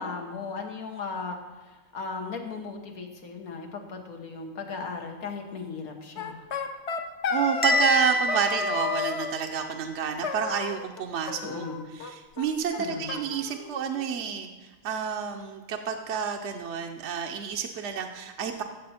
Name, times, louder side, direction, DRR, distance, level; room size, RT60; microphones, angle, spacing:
voice 1, 0.0-6.4 11.4-11.9 12.8-13.2, left 4 dB, 90° left, 2 dB, 1.7 m, -37 dB
sound 1, 6.2-8.0 8.3-9.3 10.2-11.0 11.3-12.1 12.4-12.5 12.7-12.8 13.1-14.1, left 5 dB, 55° left, 1.0 m, -32 dB
voice 2, 7.3-11.7 11.9-18.6, right 7 dB, 60° right, 3 dB, 0.9 m, -30 dB
Bell, 7.6-9.7, left 1 dB, 10° left, 0.5 m, -27 dB
15.0 x 6.9 x 4.3 m, 1.2 s
omnidirectional pair, 1.5 m